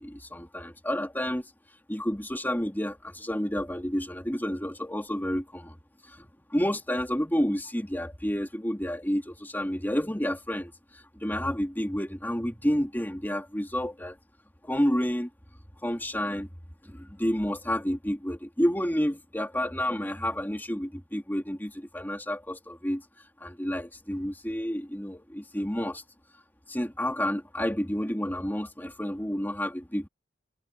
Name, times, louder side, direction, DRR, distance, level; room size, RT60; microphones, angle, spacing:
voice 1, 0.0-1.5 1.9-5.8 6.0-14.2 14.6-15.3 15.8-16.5 16.8-23.0 23.4-26.0 26.7-30.1, equal, 10° left, 2.9 m, -30 dB
head